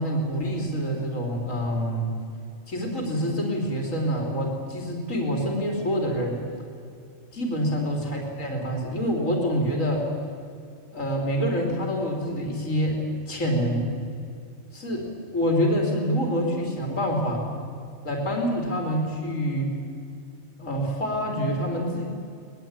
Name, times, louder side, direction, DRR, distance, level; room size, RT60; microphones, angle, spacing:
voice 1, 0.0-2.1 2.7-6.4 7.3-10.0 10.9-13.0 13.3-13.9 14.7-15.1 15.3-17.4 18.0-19.7 20.6-22.1, equal, 80° left, 1 dB, 3.8 m, -26 dB
22.0 x 20.5 x 8.9 m, 2.4 s
omnidirectional pair, 1.3 m